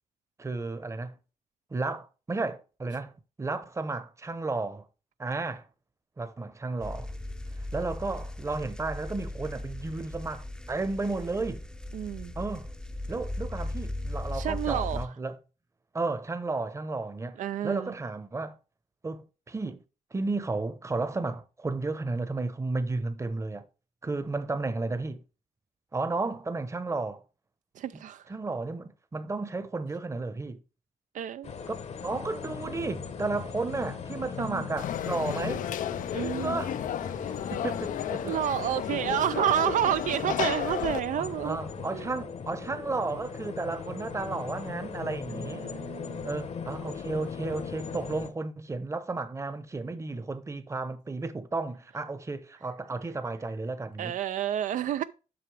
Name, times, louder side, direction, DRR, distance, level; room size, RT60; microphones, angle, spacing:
voice 1, 0.4-1.2 1.7-4.8 5.2-5.7 6.2-7.1 7.7-11.6 12.4-12.7 13.1-15.4 15.9-18.6 19.0-19.8 20.1-23.6 24.0-25.2 25.9-27.2 27.9-28.0 28.3-30.6 31.7-31.8 32.0-35.7 36.4-36.8 37.5-38.4 38.6-38.8 40.2-40.3 41.1-45.7 46.2-54.1, right 3 dB, 20° right, 0.8 m, -33 dB
sound 1, 6.8-15.1, left 1 dB, 5° left, 0.6 m, -37 dB
voice 2, 11.9-12.3 14.3-15.1 17.4-17.9 27.8-28.2 31.1-31.5 34.4-34.7 36.1-36.6 38.2-41.6 41.9-42.0 45.3-46.3 54.0-55.0, right 11 dB, 75° right, 0.4 m, -30 dB
sound 2, 31.4-48.3, left 6 dB, 55° left, 0.9 m, -39 dB
Conversation / Crowd, 34.8-41.0, left 10 dB, 80° left, 0.5 m, -33 dB
7.8 x 5.9 x 3.3 m
cardioid pair, 100°, 13 cm